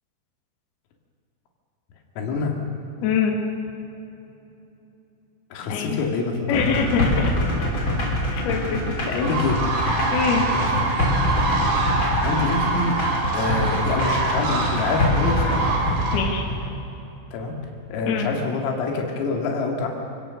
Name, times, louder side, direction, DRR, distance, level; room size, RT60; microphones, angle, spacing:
voice 1, 2.2-2.5 5.5-6.6 9.1-9.6 10.5-10.8 12.2-12.9 13.3-15.6 17.3-17.5 17.9-19.9, left 3 dB, 85° left, 1 dB, 5.1 m, -26 dB
voice 2, 3.0-3.4 5.7-6.0 6.5-7.3 8.3-8.8 9.1-9.2 9.8-10.4 16.1-16.5 18.1-18.3, left 6 dB, 60° left, 1 dB, 3.8 m, -24 dB
sound 1, 6.5-16.7, left 1 dB, 30° left, 3.2 m, -25 dB
sound 2, 9.2-16.2, right 3 dB, 70° right, 5.4 m, -25 dB
27.5 x 17.5 x 6.6 m, 3.0 s
omnidirectional pair, 5.8 m